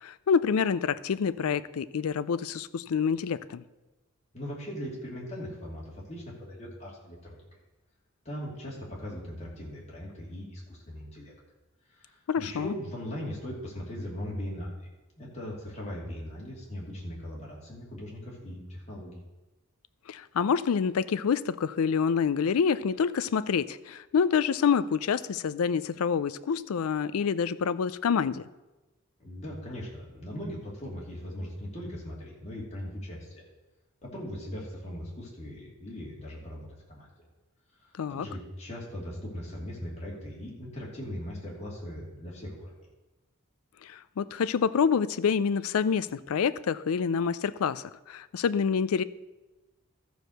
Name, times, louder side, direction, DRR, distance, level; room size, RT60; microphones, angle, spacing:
voice 1, 0.0-3.6 12.3-12.7 20.1-28.4 38.0-38.3 43.8-49.0, left 6 dB, 85° left, 0.4 m, -27 dB
voice 2, 4.3-7.4 8.2-11.3 11.9-14.9 15.2-19.2 29.2-33.4 34.0-37.1 37.8-42.7, equal, 30° left, 2.5 m, -39 dB
13.0 x 4.7 x 6.5 m
head